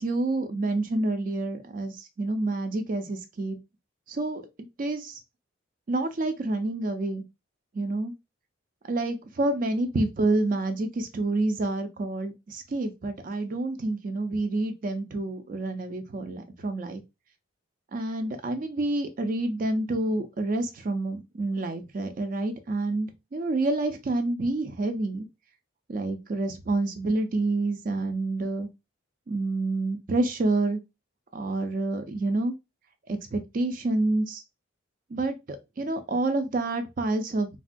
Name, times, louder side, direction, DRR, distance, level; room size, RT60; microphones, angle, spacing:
voice 1, 0.0-3.6 4.1-4.4 4.8-5.2 5.9-7.2 7.7-8.1 8.9-17.0 17.9-25.3 25.9-28.7 29.3-30.8 31.3-32.5 33.1-34.4 35.1-37.5, right 2 dB, 40° right, 0.4 m, -28 dB
3.3 x 2.2 x 2.5 m
head